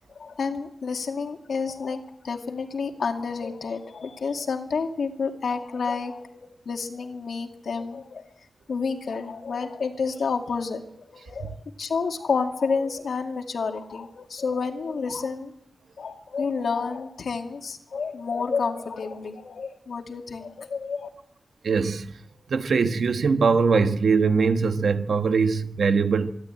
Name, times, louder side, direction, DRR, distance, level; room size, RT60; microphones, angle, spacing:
voice 1, 0.1-8.3 8.7-10.8 11.1-15.5 16.0-21.1, left 5 dB, 75° left, 2.3 m, -30 dB
voice 2, 21.6-22.1 22.5-26.3, right 5 dB, 75° right, 1.4 m, -22 dB
25.0 x 12.0 x 9.0 m
wide cardioid pair, 160°, 0 cm